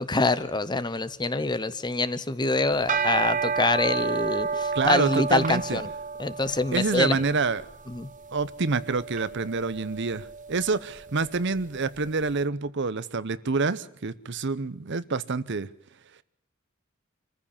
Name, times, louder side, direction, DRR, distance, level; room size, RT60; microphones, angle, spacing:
voice 1, 0.0-5.9 6.2-7.2 7.9-8.1, left 3 dB, 20° left, 14 dB, 0.8 m, -25 dB
sound 1, 2.7-12.1, right 5 dB, 40° right, 1.1 m, -31 dB
voice 2, 4.7-5.8 6.7-7.6 8.3-15.7, right 4 dB, 60° right, 15 dB, 0.8 m, -27 dB
26.0 x 15.0 x 7.2 m, 0.69 s
head